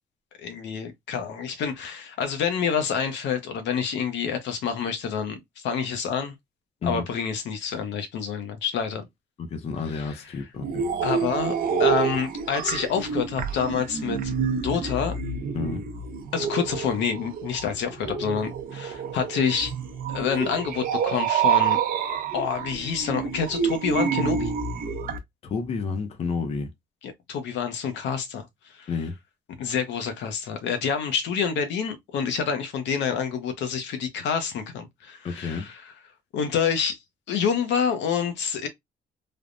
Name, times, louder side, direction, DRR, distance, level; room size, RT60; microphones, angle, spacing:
voice 1, 0.4-6.3 6.8-9.0 9.8-10.5 11.0-11.5 11.8-14.3 14.6-15.2 16.3-19.7 20.1-21.8 22.3-24.5 27.0-28.5 28.7-29.1 29.6-36.0 36.3-37.0 37.3-38.7, left 7 dB, 85° left, 0.6 m, -28 dB
voice 2, 9.4-10.8 15.5-15.8 25.4-26.7 28.9-29.1 35.2-35.7, left 5 dB, 35° left, 0.5 m, -30 dB
sound 1, 10.6-25.2, right 7 dB, 55° right, 0.6 m, -28 dB
3.3 x 2.1 x 2.4 m
cardioid pair, 170°, 18 cm